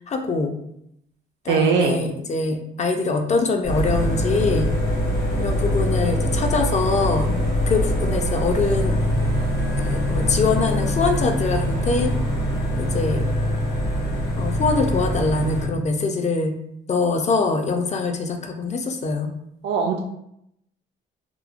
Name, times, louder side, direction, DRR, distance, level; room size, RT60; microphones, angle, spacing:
voice 1, 0.1-0.5 1.5-4.7 5.4-7.3 7.7-8.9 9.8-12.1 12.8-13.2 14.4-16.6 16.9-19.3, left 3 dB, 35° left, 4 dB, 0.4 m, -23 dB
voice 2, 1.5-2.0 19.6-20.0, right 5 dB, 70° right, 1 dB, 0.4 m, -20 dB
sound 1, 3.6-15.7, equal, 80° left, 0.9 m, -23 dB
2.9 x 2.0 x 2.4 m, 0.77 s
cardioid pair, 90°, 20 cm